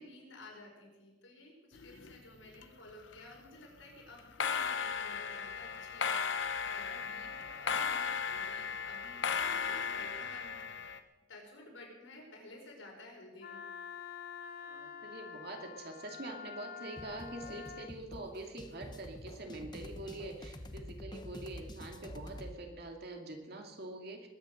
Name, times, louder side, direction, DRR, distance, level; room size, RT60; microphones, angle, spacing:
voice 1, 0.0-6.2 6.6-11.0 11.3-13.6, left 2 dB, 80° left, -1 dB, 5.4 m, -54 dB
sound 1, 1.7-3.3 4.2-11.0, left 6 dB, 65° left, 1.0 m, -36 dB
Wind instrument woodwind instrument, 13.4-17.9, left 7 dB, 45° left, 0.6 m, -47 dB
voice 2, 14.6-24.3, right 2 dB, 55° right, 3 dB, 2.4 m, -45 dB
sound 2, 17.0-22.6, left 1 dB, 20° left, 0.9 m, -47 dB
21.0 x 9.6 x 6.4 m, 1.2 s
head